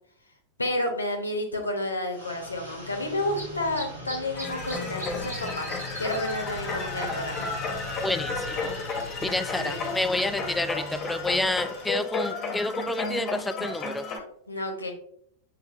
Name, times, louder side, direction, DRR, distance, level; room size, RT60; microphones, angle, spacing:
voice 1, 0.6-5.7 6.0-7.6 9.6-9.9 14.5-14.9, left 1 dB, 80° left, 4 dB, 0.8 m, -30 dB
sound 1, 2.1-12.0, left 1 dB, 85° right, 1.6 m, -39 dB
sound 2, 4.4-14.2, left 3 dB, 30° left, 1.2 m, -33 dB
voice 2, 8.0-8.8 9.2-14.0, left 2 dB, 5° left, 10 dB, 0.3 m, -29 dB
6.3 x 3.3 x 2.4 m, 0.67 s
figure-of-eight pair, 90°, 0 cm